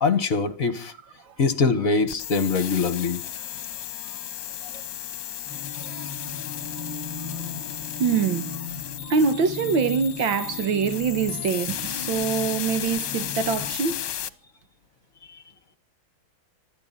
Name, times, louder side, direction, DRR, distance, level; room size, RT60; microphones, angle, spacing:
voice 1, 0.0-0.9 1.4-3.2, left 4 dB, 45° left, 1.7 m, -23 dB
sound 1, 2.1-14.3, left 11 dB, 65° left, 1.5 m, -34 dB
sound 2, 5.4-13.7, left 3 dB, 10° right, 6.8 m, -38 dB
voice 2, 8.0-8.6 9.0-14.0, right 5 dB, 70° right, 2.0 m, -24 dB
25.5 x 12.5 x 4.2 m
omnidirectional pair, 2.3 m